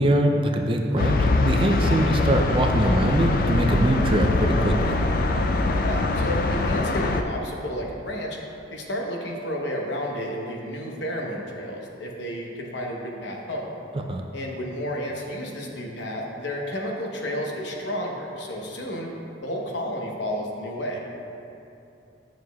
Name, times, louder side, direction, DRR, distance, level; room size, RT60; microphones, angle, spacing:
voice 1, 0.0-5.0 14.1-14.2, right 1 dB, 30° right, 3 dB, 0.4 m, -22 dB
sound 1, 1.0-7.2, left 2 dB, 50° left, 0.3 m, -23 dB
voice 2, 5.7-8.4 8.7-13.7 14.3-19.1 19.4-21.0, equal, 80° left, 0 dB, 0.9 m, -31 dB
9.4 x 6.3 x 2.3 m, 2.7 s
head